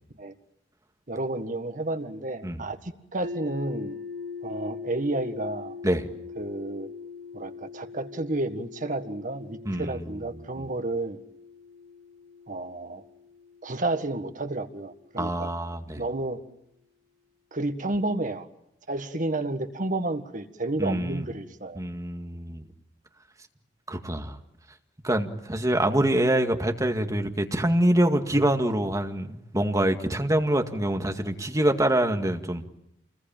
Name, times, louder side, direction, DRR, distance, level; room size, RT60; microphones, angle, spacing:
voice 1, 1.1-4.0 4.4-5.8 6.4-6.9 7.3-11.2 12.5-13.0 13.6-15.5 16.0-16.4 17.5-18.5 18.9-21.8, right 2 dB, 45° right, 1.7 m, -31 dB
sound 1, 3.2-15.1, left 5 dB, 80° right, 5.6 m, -42 dB
voice 2, 9.7-10.0 15.2-16.0 20.8-21.2 21.8-22.6 23.9-24.4 25.0-32.6, right 1 dB, 20° right, 2.0 m, -25 dB
28.5 x 21.0 x 9.0 m
head